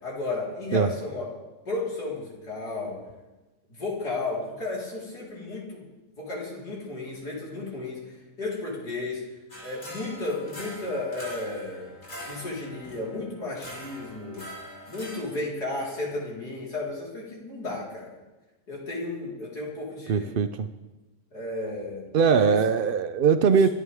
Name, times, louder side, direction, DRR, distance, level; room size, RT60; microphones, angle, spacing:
voice 1, 0.0-1.3 1.6-3.0 3.7-5.9 6.2-9.2 9.6-11.9 12.2-14.4 14.9-18.1 18.7-20.3 21.3-22.5, left 2 dB, 80° left, -5 dB, 5.0 m, -33 dB
sound 1, 9.5-15.2, equal, 45° left, 5.3 m, -43 dB
voice 2, 20.1-20.7 22.1-23.7, right 6 dB, 65° right, 10 dB, 0.5 m, -21 dB
25.5 x 14.5 x 3.6 m, 1.1 s
omnidirectional pair, 1.7 m